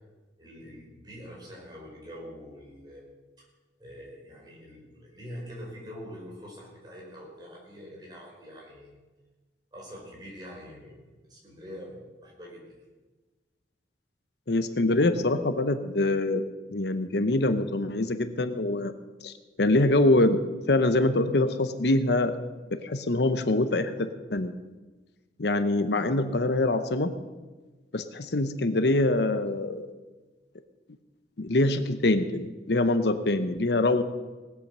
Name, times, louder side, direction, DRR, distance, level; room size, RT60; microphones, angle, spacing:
voice 1, 0.4-3.0 3.4-3.5 3.8-8.9 9.7-12.8, equal, 25° right, -3 dB, 4.9 m, -44 dB
voice 2, 14.5-16.4 16.7-18.9 19.2-20.4 20.7-22.3 22.7-24.5 25.4-27.1 27.9-29.9 31.4-34.0, left 2 dB, 70° left, 10 dB, 0.9 m, -24 dB
18.5 x 8.6 x 6.8 m, 1.2 s
head